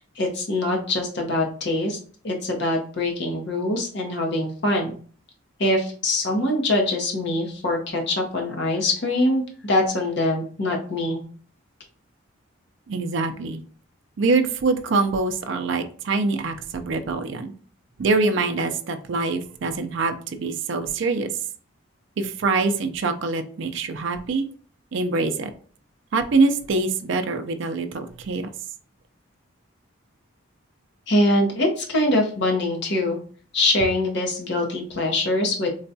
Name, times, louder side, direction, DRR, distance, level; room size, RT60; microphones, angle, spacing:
voice 1, 0.0-2.0 2.2-4.9 5.6-11.2 31.1-33.2 33.5-35.7, left 1 dB, 55° left, 1 dB, 0.8 m, -23 dB
voice 2, 12.9-13.6 14.2-17.5 18.0-21.3 22.2-24.5 24.9-25.5 26.1-28.5, right 3 dB, 60° right, 8 dB, 0.4 m, -24 dB
3.9 x 2.2 x 2.6 m, 0.44 s
head